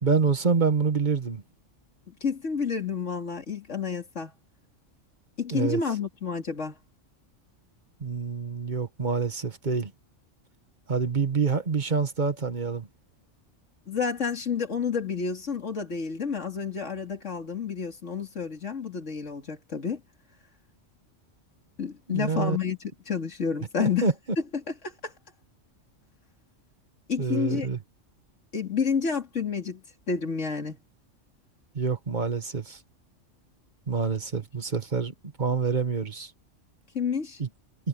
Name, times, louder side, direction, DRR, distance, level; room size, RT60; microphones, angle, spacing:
voice 1, 0.0-1.4 5.5-5.8 8.0-9.9 10.9-12.9 22.1-22.6 23.8-24.1 27.2-27.8 31.7-32.8 33.9-35.1 35.4-36.3 37.4-37.5, right 5 dB, 35° right, 1.7 m, -26 dB
voice 2, 2.1-4.3 5.4-6.8 13.9-20.0 21.8-24.1 24.7-25.1 27.1-27.7 28.5-30.8 36.9-37.4, left 6 dB, 70° left, 3.1 m, -30 dB
omnidirectional pair, 1.3 m